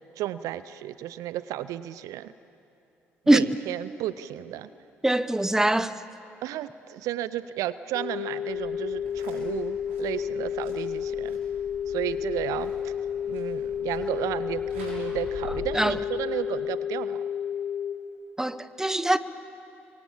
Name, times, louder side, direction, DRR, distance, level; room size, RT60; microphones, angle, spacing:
voice 1, 0.2-2.3 3.3-4.7 6.4-11.4 11.9-12.9 13.2-17.2, right 13 dB, 60° right, 0.6 m, -33 dB
voice 2, 5.0-6.0 15.7-16.0 18.4-19.2, right 1 dB, 5° right, 1.0 m, -22 dB
sound 1, 7.9-17.9, left 8 dB, 50° left, 3.2 m, -31 dB
sound 2, 8.5-15.7, equal, 80° right, 6.5 m, -46 dB
30.0 x 24.0 x 7.3 m
figure-of-eight pair, 45°, 6 cm